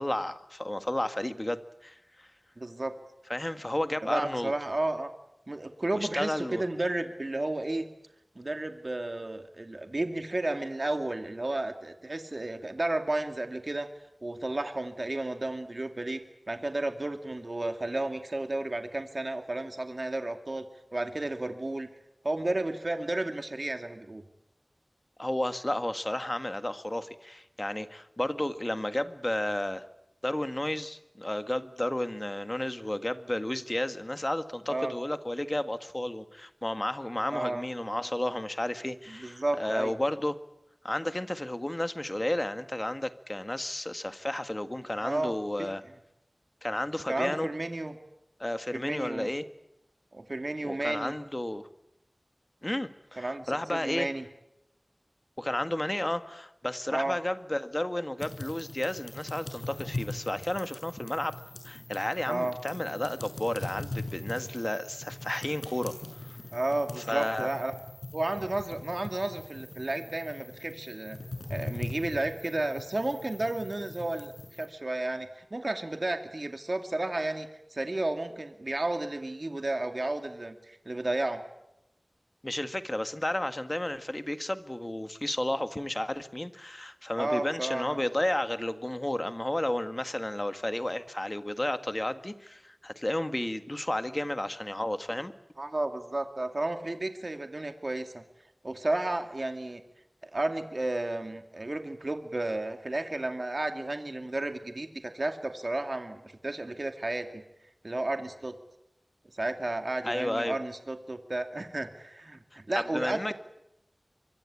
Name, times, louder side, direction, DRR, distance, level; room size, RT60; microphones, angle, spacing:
voice 1, 0.0-2.3 3.3-4.5 5.9-6.6 25.2-29.8 30.2-40.4 40.8-45.8 46.6-47.5 48.4-49.4 50.6-51.7 52.6-54.1 55.4-61.4 61.6-65.9 66.2-66.4 67.1-67.5 82.4-95.3 110.0-110.6 112.9-113.3, left 1 dB, 30° left, 10 dB, 1.7 m, -32 dB
voice 2, 2.6-3.0 4.0-5.1 5.5-7.9 8.4-13.9 14.2-16.2 16.5-20.6 20.9-21.9 22.2-24.2 34.7-34.9 37.3-37.6 39.1-39.9 45.0-45.7 47.1-47.9 48.7-49.3 50.1-51.1 53.2-54.3 56.9-57.2 62.3-62.5 66.5-67.7 68.1-71.2 71.5-81.4 87.2-88.0 95.6-98.2 98.6-99.8 100.2-107.4 107.8-108.6 109.3-113.3, right 2 dB, 60° right, 7 dB, 2.4 m, -32 dB
sound 1, 58.2-74.7, left 2 dB, 75° left, 6.8 m, -41 dB
24.5 x 24.0 x 8.7 m, 0.84 s
wide cardioid pair, 45°, 0 cm